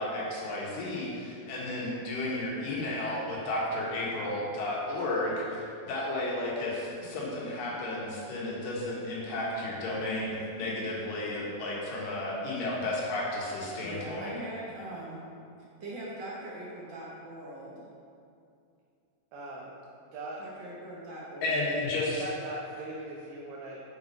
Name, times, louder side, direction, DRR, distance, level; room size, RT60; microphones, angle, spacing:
voice 1, 0.0-14.3 21.4-22.2, left 2 dB, 90° left, -5 dB, 3.2 m, -33 dB
voice 2, 7.0-7.5 13.8-15.2 15.8-17.8 20.4-21.6, right 1 dB, 65° right, -6 dB, 1.1 m, -41 dB
voice 3, 19.3-19.7 20.1-20.4 22.0-23.8, right 1 dB, 85° right, -4 dB, 2.5 m, -40 dB
7.8 x 5.3 x 5.3 m, 2.5 s
omnidirectional pair, 3.7 m